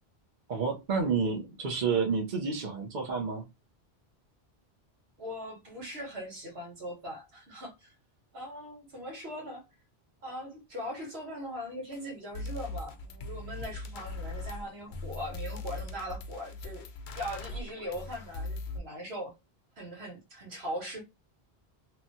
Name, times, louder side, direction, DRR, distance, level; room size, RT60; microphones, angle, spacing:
voice 1, 0.5-3.4, right 5 dB, 55° right, 0.8 m, -30 dB
voice 2, 5.2-7.9 8.3-9.6 10.2-16.9 17.1-19.3 19.8-21.0, equal, 85° right, 1.5 m, -40 dB
sound 1, 11.9-12.0 12.3-18.8, left 2 dB, 60° left, 0.6 m, -40 dB
3.0 x 2.2 x 2.6 m
omnidirectional pair, 1.0 m